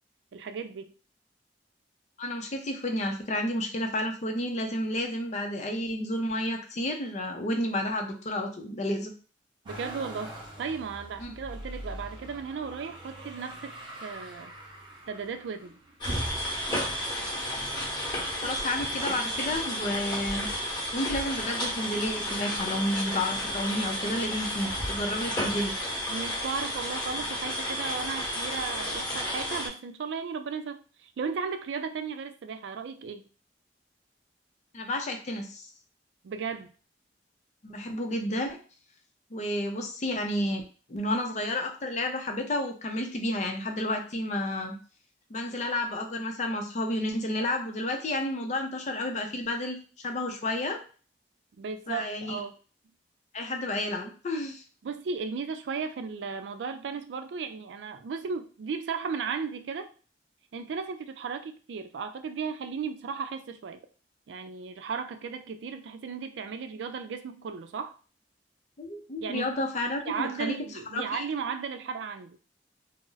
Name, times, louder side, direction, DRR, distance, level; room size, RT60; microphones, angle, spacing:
voice 1, 0.3-0.9 9.7-13.7 14.0-14.5 15.1-15.8 26.1-33.2 36.2-36.7 51.6-52.6 54.8-59.9 60.5-63.8 64.3-67.9 69.2-69.5 69.9-72.4, right 5 dB, 85° right, 8 dB, 0.4 m, -35 dB
voice 2, 2.2-9.1 11.2-11.3 18.4-20.5 20.9-25.7 34.7-35.7 37.6-38.6 39.3-40.6 40.9-44.8 45.3-50.8 51.9-52.4 53.3-54.6 68.8-70.5 70.9-71.2, left 1 dB, 40° left, 4 dB, 0.5 m, -31 dB
Motor vehicle (road), 9.6-18.8 19.4-20.2 20.5-21.6 22.6-22.7, equal, 25° right, 0.7 m, -45 dB
sound 1, 16.0-29.7, equal, 25° left, 1.0 m, -32 dB
2.5 x 2.0 x 3.8 m, 0.38 s
head